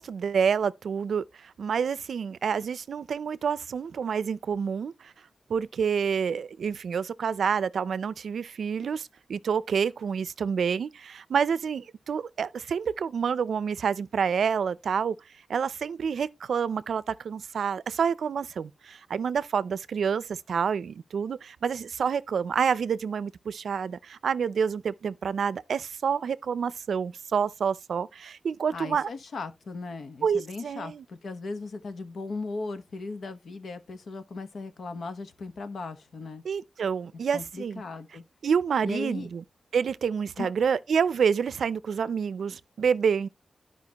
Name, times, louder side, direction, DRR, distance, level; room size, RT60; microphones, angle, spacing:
voice 1, 0.0-5.1 5.5-15.2 15.5-29.1 30.2-31.0 36.4-37.8 38.4-39.4 39.7-43.3, right 6 dB, 75° right, 0.4 m, -28 dB
voice 2, 28.7-36.4 37.3-38.2 38.8-39.3 40.4-40.5, left 3 dB, 60° left, 1.1 m, -37 dB
13.0 x 5.0 x 2.9 m
wide cardioid pair, 175°, 0 cm